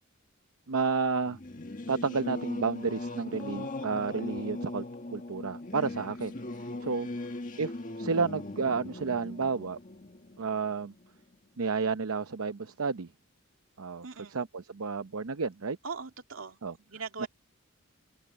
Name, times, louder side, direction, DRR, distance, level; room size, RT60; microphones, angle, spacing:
voice 1, 0.7-1.4 1.9-4.8 5.1-6.3 6.6-7.1 7.6-7.7 8.0-9.8 10.4-10.9 11.6-13.1 13.8-14.1 14.3-15.8 16.6-16.7 17.2-17.3, right 4 dB, 85° right, 0.7 m, -31 dB
Singing / Musical instrument, 1.3-11.4, left 2 dB, 40° left, 1.7 m, -39 dB
voice 2, 14.0-14.4 15.8-17.3, right 5 dB, 70° right, 2.6 m, -40 dB
open air
head